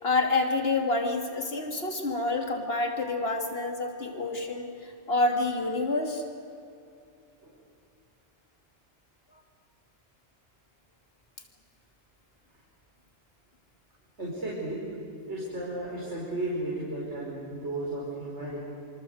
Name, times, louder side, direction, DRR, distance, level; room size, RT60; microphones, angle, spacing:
voice 1, 0.0-4.7 5.1-6.2, left 3 dB, 60° left, 3 dB, 3.1 m, -28 dB
voice 2, 14.2-14.8 15.3-18.6, right 1 dB, 80° right, -5 dB, 5.3 m, -34 dB
26.5 x 26.0 x 8.0 m, 2.5 s
omnidirectional pair, 1.2 m